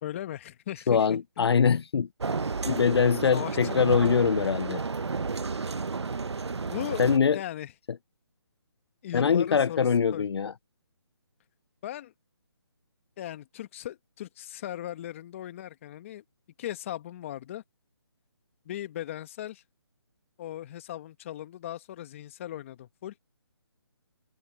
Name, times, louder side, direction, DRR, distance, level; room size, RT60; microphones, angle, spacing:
voice 1, 0.0-1.5 3.3-3.9 6.7-7.0 7.3-7.7 9.0-10.2 11.8-12.1 13.2-16.2 16.6-17.6 18.6-19.6 20.4-23.1, left 12 dB, 30° left, 1.6 m, -38 dB
voice 2, 0.9-2.1 2.6-4.8 7.0-7.4 9.1-10.5, left 6 dB, 70° left, 0.4 m, -23 dB
sound 1, 2.2-7.2, right 4 dB, 85° right, 0.9 m, -31 dB
figure-of-eight pair, 155°, 14 cm